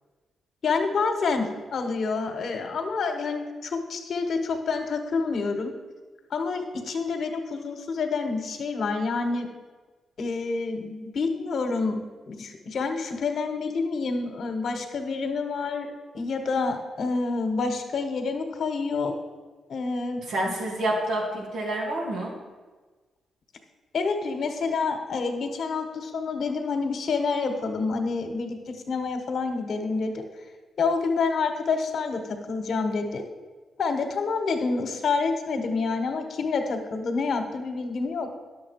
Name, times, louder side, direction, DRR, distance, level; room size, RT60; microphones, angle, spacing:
voice 1, 0.6-5.7 6.3-9.5 10.2-19.1 19.7-20.5 23.9-30.3 30.8-33.3 33.8-38.3, left 4 dB, 65° left, 6 dB, 1.3 m, -28 dB
voice 2, 20.3-22.3, right 1 dB, 80° right, -2 dB, 2.5 m, -28 dB
10.0 x 7.3 x 4.7 m, 1.3 s
supercardioid pair, 60°, 0 cm